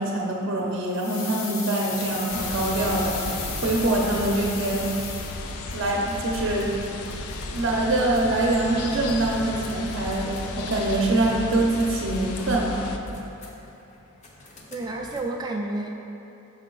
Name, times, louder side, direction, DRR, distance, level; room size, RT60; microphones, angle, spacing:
voice 1, 0.0-3.2 3.6-4.9 5.7-6.7 7.5-12.9, right 2 dB, 55° right, -2 dB, 0.7 m, -24 dB
sound 1, 0.9-5.7 6.0-6.1, left 5 dB, 65° left, 0.8 m, -35 dB
sound 2, 1.8-15.2, left 1 dB, 30° left, 0.6 m, -44 dB
sound 3, 2.3-13.0, left 2 dB, 85° left, 0.4 m, -34 dB
voice 2, 14.7-15.9, right 2 dB, 20° right, 0 dB, 0.4 m, -30 dB
5.5 x 5.5 x 3.8 m, 2.9 s
head